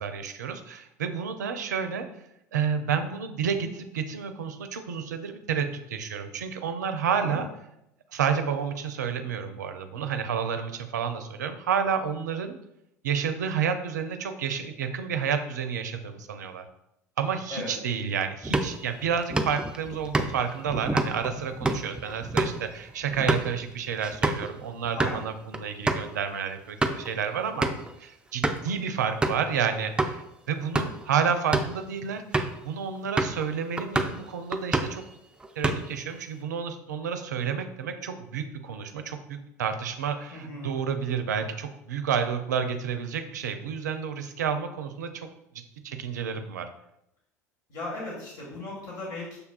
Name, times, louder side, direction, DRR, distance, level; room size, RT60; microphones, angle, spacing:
voice 1, 0.0-2.1 2.5-7.5 8.1-12.6 13.0-16.7 17.2-27.7 28.0-32.2 32.6-35.0 35.6-45.3 45.5-46.7, right 7 dB, 80° right, 8 dB, 0.4 m, -30 dB
sound 1, 18.4-24.5 24.8-25.2 25.5-25.6 25.9-26.1 26.6-27.1 27.6-27.9 28.4-28.7 29.2-29.5 30.0-30.1 30.6-31.0 31.4-31.8 32.3-32.6 33.2-33.5 33.8-34.2 34.5-35.0 35.4-36.0, right 2 dB, 10° right, 0.4 m, -28 dB
voice 2, 40.3-40.7 47.7-49.4, left 2 dB, 55° left, -4 dB, 1.4 m, -36 dB
6.5 x 2.2 x 2.3 m, 0.83 s
hypercardioid pair, 75°, 9 cm